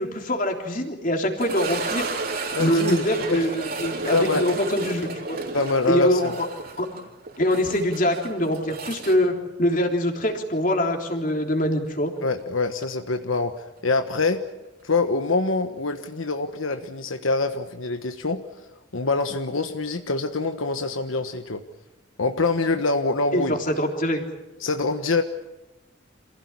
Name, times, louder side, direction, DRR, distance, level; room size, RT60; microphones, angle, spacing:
voice 1, 0.0-2.1 2.6-5.4 5.8-6.5 6.8-6.9 7.4-12.1 23.3-24.2, left 1 dB, 40° left, 3 dB, 3.4 m, -24 dB
sound 1, 1.4-10.3 10.6-10.7 11.3-11.4 14.0-14.1, right 3 dB, 45° right, 3.0 m, -33 dB
voice 2, 2.5-3.5 4.1-4.5 5.5-6.3 12.2-13.5 13.8-14.4 14.8-18.4 18.9-21.6 22.2-23.5 24.6-25.2, left 3 dB, 85° left, 6 dB, 1.4 m, -25 dB
27.5 x 16.5 x 9.8 m, 0.99 s
head